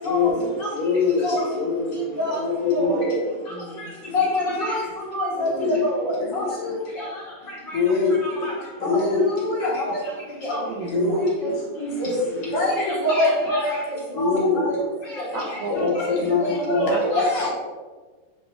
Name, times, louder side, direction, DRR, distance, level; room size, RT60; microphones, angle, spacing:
voice 1, 0.0-3.2 4.0-4.1 5.3-6.8 7.7-9.6 10.8-11.3 12.3-12.6 14.1-14.7 15.7-17.2, left 4 dB, 70° left, -3 dB, 2.9 m, -24 dB
voice 2, 2.7-3.2 4.1-4.8 5.1-5.5 5.8-6.7 8.4-8.5 9.3-9.7 10.4-10.6 12.0-12.1 12.5-13.8 14.2-14.6 16.0-16.1 16.4-16.5 16.8-17.5, left 1 dB, 50° left, -6 dB, 1.5 m, -24 dB
voice 3, 3.5-3.9 8.8-8.9 10.6-11.5 15.3-15.7 16.7-17.0, right 5 dB, 85° right, 0 dB, 1.5 m, -32 dB
9.2 x 3.2 x 3.4 m, 1.4 s
omnidirectional pair, 3.9 m